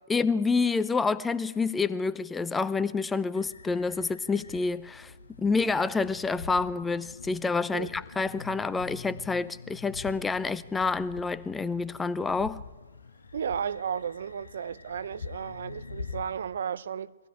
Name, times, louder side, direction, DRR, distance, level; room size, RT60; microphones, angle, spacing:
voice 1, 0.1-5.1 5.4-12.6, left 4 dB, 10° left, 0.7 m, -28 dB
sound 1, 3.3-16.3, left 4 dB, 80° left, 1.7 m, -45 dB
voice 2, 13.3-17.2, right 7 dB, 65° right, 0.7 m, -34 dB
23.5 x 17.0 x 8.7 m
figure-of-eight pair, 125°, 0 cm